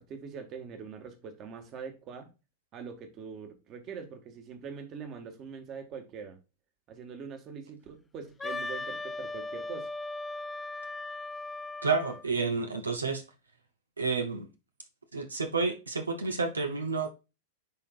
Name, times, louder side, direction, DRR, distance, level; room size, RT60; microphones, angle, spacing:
voice 1, 0.0-2.3 2.7-6.4 6.9-9.9, right 6 dB, 35° right, 1.6 m, -43 dB
Wind instrument woodwind instrument, 8.4-12.2, left 2 dB, 10° left, 0.4 m, -38 dB
voice 2, 11.8-13.2 14.0-14.5 15.1-17.1, right 4 dB, 80° right, 0.8 m, -30 dB
10.5 x 3.9 x 2.4 m
figure-of-eight pair, 95°, 0 cm